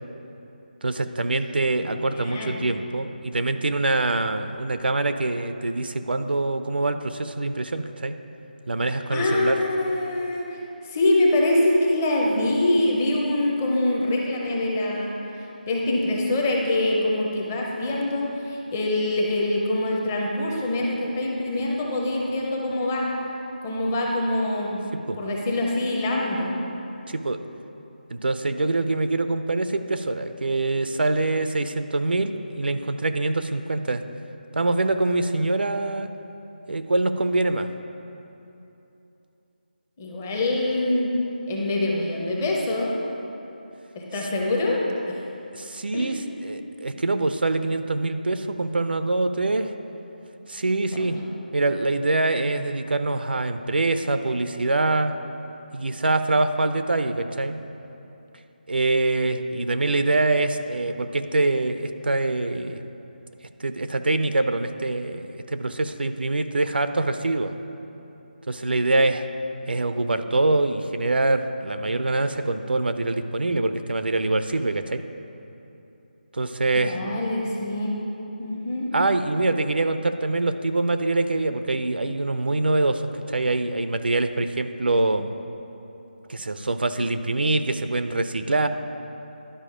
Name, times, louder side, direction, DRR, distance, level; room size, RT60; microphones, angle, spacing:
voice 1, 0.8-8.2 8.7-9.6 25.1-25.2 27.1-27.4 28.1-34.0 34.5-36.1 36.7-37.7 45.5-49.7 50.5-51.2 51.5-55.1 55.7-57.6 58.7-62.8 63.6-67.5 68.5-69.3 69.7-75.0 76.3-77.0 78.9-85.3 86.3-88.7, right 2 dB, 80° right, 9 dB, 0.5 m, -24 dB
voice 2, 1.7-2.6 9.1-10.6 10.8-23.1 23.6-24.8 25.2-26.6 40.0-41.2 41.5-43.0 43.9-45.2 45.9-46.2 50.9-51.2 76.7-78.0 78.4-78.9, left 1 dB, 15° left, -2 dB, 0.5 m, -24 dB
11.0 x 5.0 x 5.0 m, 2.9 s
figure-of-eight pair, 175°, 5 cm